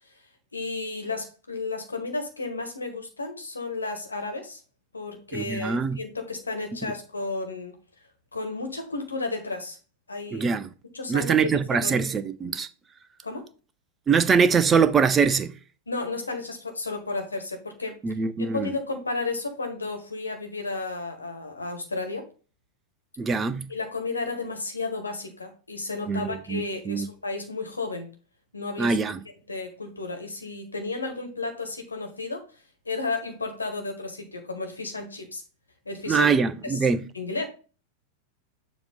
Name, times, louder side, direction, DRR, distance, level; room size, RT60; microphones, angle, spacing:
voice 1, 0.5-4.6 4.9-7.7 8.3-9.8 10.1-10.5 10.9-12.0 13.2-13.5 15.9-18.0 18.4-22.2 23.7-28.1 28.5-29.0 29.5-32.4 32.8-35.4 35.8-36.3 36.6-36.8 37.1-37.4, left 3 dB, 80° left, 1.4 m, -33 dB
voice 2, 5.3-6.0 10.3-10.7 11.1-12.7 14.1-15.5 18.0-18.7 23.2-23.7 26.1-27.1 28.8-29.2 36.1-37.0, right 5 dB, 20° right, 0.5 m, -23 dB
7.0 x 3.0 x 5.1 m
figure-of-eight pair, 90°, 0 cm